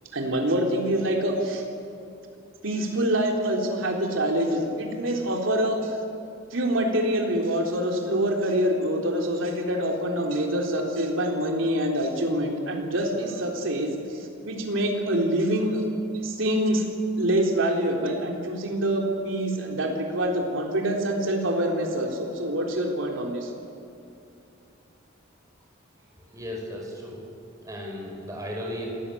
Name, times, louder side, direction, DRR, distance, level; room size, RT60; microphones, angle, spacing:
voice 1, 0.1-1.6 2.6-6.0 6.5-15.8 16.2-16.9 17.2-23.5, right 1 dB, 65° right, 1 dB, 3.8 m, -25 dB
voice 2, 26.3-27.2 27.6-28.9, left 1 dB, 15° right, -1 dB, 6.0 m, -35 dB
27.5 x 18.0 x 8.7 m, 2.7 s
head